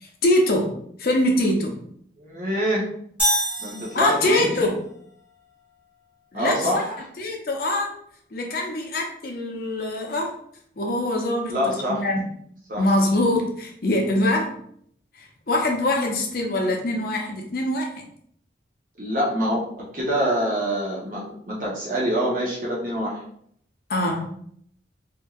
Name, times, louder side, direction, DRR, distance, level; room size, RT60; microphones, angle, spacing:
voice 1, 0.0-0.7 1.0-1.8 3.9-4.8 6.3-6.6 7.2-7.9 8.3-10.3 10.8-12.2 12.8-14.5 15.1-17.9 23.9-24.3, left 1 dB, 50° left, 1 dB, 0.6 m, -23 dB
voice 2, 2.2-2.8 3.6-4.7 6.3-7.1 11.5-12.0 12.7-12.8 19.0-19.6 19.9-23.2, equal, 45° right, -4 dB, 0.7 m, -25 dB
sound 1, 3.2-4.6, equal, 10° right, 1.1 m, -25 dB
2.8 x 2.6 x 2.3 m, 0.65 s
head